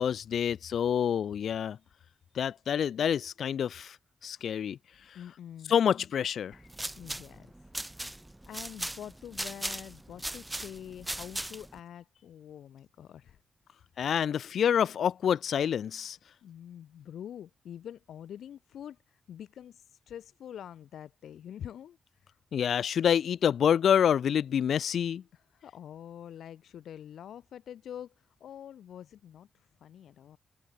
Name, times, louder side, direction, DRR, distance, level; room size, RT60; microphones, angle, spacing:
voice 1, 0.0-1.8 2.3-4.0 4.2-4.8 5.1-5.2 5.7-6.6 14.0-16.2 22.5-25.2, left 8 dB, 65° left, 0.7 m, -27 dB
voice 2, 5.1-5.7 7.0-7.7 8.5-13.4 16.4-22.3 25.3-30.4, left 10 dB, 85° left, 4.4 m, -46 dB
sound 1, 6.5-11.8, right 1 dB, 10° right, 0.8 m, -38 dB
wide cardioid pair, 155°, 0 cm